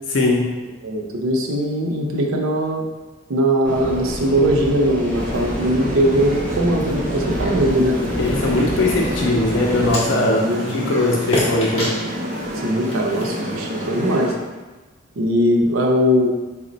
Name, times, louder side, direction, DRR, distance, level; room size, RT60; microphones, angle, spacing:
voice 1, 0.1-0.5 8.2-10.4 10.7-11.9, left 2 dB, 60° left, -1 dB, 0.4 m, -20 dB
voice 2, 0.8-2.8 3.3-8.0 10.2-10.6 12.6-14.3 15.2-16.3, equal, 85° right, 1 dB, 0.6 m, -20 dB
sound 1, 3.6-9.9, right 1 dB, 5° left, 0.5 m, -27 dB
sound 2, 5.1-14.3, equal, 40° right, 0.6 m, -29 dB
sound 3, 8.2-14.2, equal, 30° left, 0.8 m, -30 dB
4.0 x 2.1 x 3.9 m, 1.2 s
head